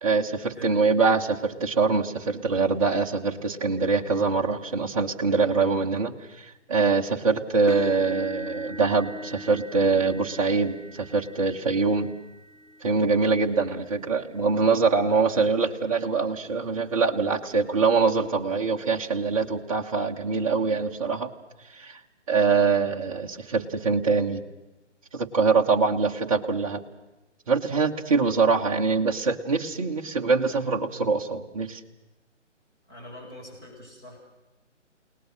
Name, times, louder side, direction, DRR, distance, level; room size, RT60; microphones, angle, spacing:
voice 1, 0.0-12.1 12.8-21.3 21.7-22.0 22.3-24.4 25.1-26.8 27.5-31.8, right 4 dB, 30° right, 1 dB, 1.2 m, -24 dB
sound 1, 7.7-15.7 16.3-16.6 17.0-17.1 18.5-18.6, left 1 dB, 5° right, 1.3 m, -41 dB
voice 2, 32.9-34.2, left 1 dB, 20° left, -4 dB, 7.1 m, -44 dB
30.0 x 19.0 x 6.5 m, 1.0 s
figure-of-eight pair, 145°, 37 cm